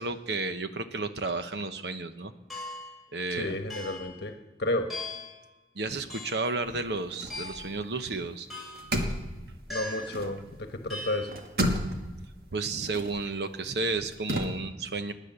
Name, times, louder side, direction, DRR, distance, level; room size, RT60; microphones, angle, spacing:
voice 1, 0.0-2.3 3.1-3.5 5.7-8.5 12.5-15.1, right 3 dB, 75° right, 9 dB, 1.1 m, -32 dB
sound 1, 2.5-3.0 3.7-4.1 4.9-5.4 6.1-6.5 7.3-7.8 8.5-8.9 9.7-10.2 10.9-11.3, left 2 dB, ahead, 6.7 m, -39 dB
voice 2, 3.4-4.3 4.6-4.9 9.7-11.3, left 1 dB, 70° left, 6 dB, 1.2 m, -31 dB
sound 2, 6.6-8.3 8.6-10.8 11.1-14.5, equal, 60° right, 1.8 m, -33 dB
20.0 x 9.6 x 6.8 m, 1.2 s
head